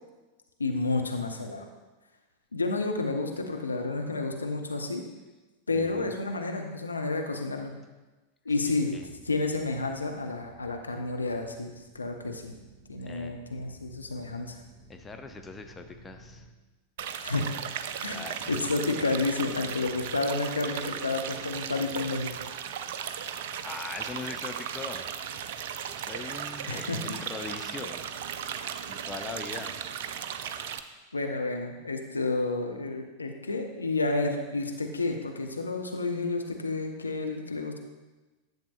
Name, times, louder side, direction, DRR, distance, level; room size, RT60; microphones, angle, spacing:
voice 1, 0.6-1.7 2.5-5.0 5.7-7.7 8.4-8.9 9.3-12.6 12.9-14.6 17.2-17.5 18.0-18.2 18.5-22.3 26.7-27.0 31.1-37.8, left 3 dB, 80° left, 3 dB, 0.7 m, -30 dB
voice 2, 5.7-6.2 8.7-9.1 13.0-13.3 14.9-16.5 18.1-18.5 23.6-25.1 26.0-28.1 28.9-29.8, left 4 dB, 15° left, 5 dB, 0.6 m, -41 dB
sound 1, 9.0-16.5, right 1 dB, ahead, 2.7 m, -55 dB
sound 2, 17.0-30.8, right 8 dB, 55° right, 0.4 m, -36 dB
10.5 x 7.4 x 2.5 m, 1.2 s
figure-of-eight pair, 90°, 0 cm